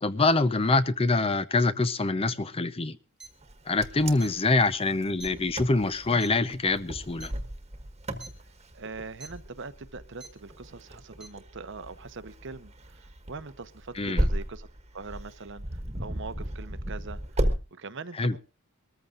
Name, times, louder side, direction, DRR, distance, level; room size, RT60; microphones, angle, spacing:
voice 1, 0.0-3.0 3.7-7.3 14.0-14.3 18.2-18.4, left 3 dB, 25° left, 0.6 m, -25 dB
sound 1, 3.2-3.3 4.2-4.3 5.2-5.3 6.2-6.3 7.2-7.3 8.2-8.3 9.2-9.3 10.2-10.3 11.2-11.3, right 4 dB, 5° right, 1.6 m, -43 dB
Wind, 3.4-17.6, right 1 dB, 30° right, 1.5 m, -35 dB
voice 2, 8.7-14.7 14.9-18.4, right 4 dB, 60° right, 1.0 m, -42 dB
23.5 x 14.0 x 2.5 m
head